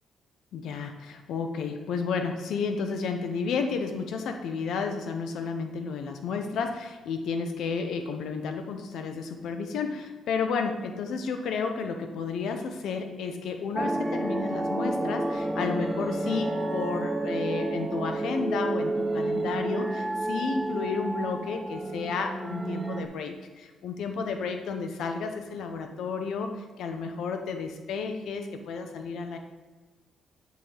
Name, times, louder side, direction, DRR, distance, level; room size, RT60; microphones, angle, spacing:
voice 1, 0.5-29.4, left 5 dB, 75° left, 5 dB, 0.7 m, -32 dB
sound 1, 13.8-23.1, right 2 dB, 20° right, 0.5 m, -30 dB
10.5 x 3.7 x 3.4 m, 1.3 s
cardioid pair, 90°, 0 cm